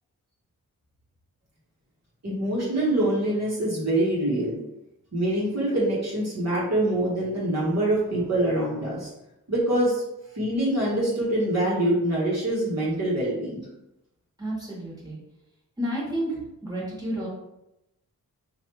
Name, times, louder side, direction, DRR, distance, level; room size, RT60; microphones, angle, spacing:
voice 1, 2.2-4.6 5.1-9.1 9.5-10.0 10.3-13.6, right 1 dB, 45° right, -6 dB, 1.2 m, -25 dB
voice 2, 14.4-15.2 15.8-16.3 16.6-17.3, equal, 10° right, -6 dB, 1.3 m, -30 dB
3.2 x 2.5 x 3.0 m, 0.89 s
cardioid pair, 60°, 37 cm